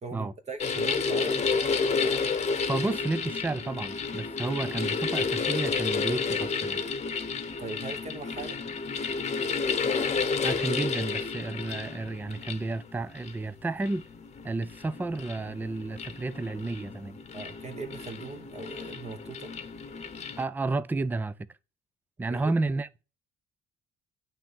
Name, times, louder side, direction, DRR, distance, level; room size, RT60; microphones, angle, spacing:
voice 1, 0.0-1.6 7.6-8.6 17.3-19.5 22.2-22.5, right 4 dB, 35° right, 1.2 m, -39 dB
sound 1, 0.6-20.4, left 5 dB, 35° left, 0.9 m, -31 dB
voice 2, 2.7-6.8 10.4-14.0 14.4-17.2 20.4-21.5 22.2-23.0, right 3 dB, 10° right, 0.4 m, -31 dB
9.0 x 3.5 x 5.7 m
cardioid pair, 105°, 21 cm